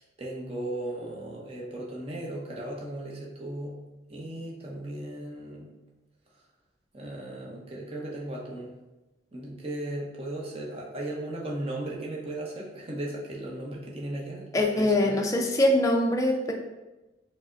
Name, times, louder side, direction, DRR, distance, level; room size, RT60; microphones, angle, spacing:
voice 1, 0.0-3.8 4.1-5.7 6.9-8.7 9.3-15.2, right 1 dB, 30° right, -3 dB, 0.7 m, -36 dB
voice 2, 14.5-16.5, left 1 dB, 20° left, 1 dB, 0.4 m, -23 dB
4.7 x 2.1 x 3.5 m, 1.1 s
head